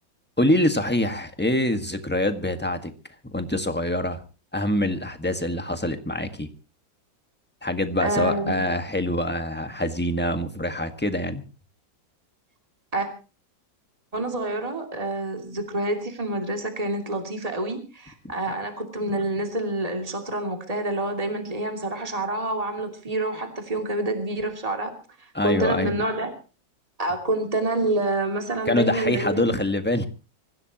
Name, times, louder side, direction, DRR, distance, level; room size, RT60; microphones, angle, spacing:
voice 1, 0.4-2.9 3.2-4.2 4.5-6.5 7.6-11.4 18.2-18.3 25.3-25.9 28.6-30.1, left 1 dB, 5° left, 7 dB, 1.4 m, -25 dB
voice 2, 8.0-8.5 12.9-13.1 14.1-24.9 25.2-26.3 27.0-29.5, right 2 dB, 20° right, 4 dB, 2.8 m, -27 dB
25.0 x 15.5 x 3.0 m, 0.34 s
omnidirectional pair, 2.1 m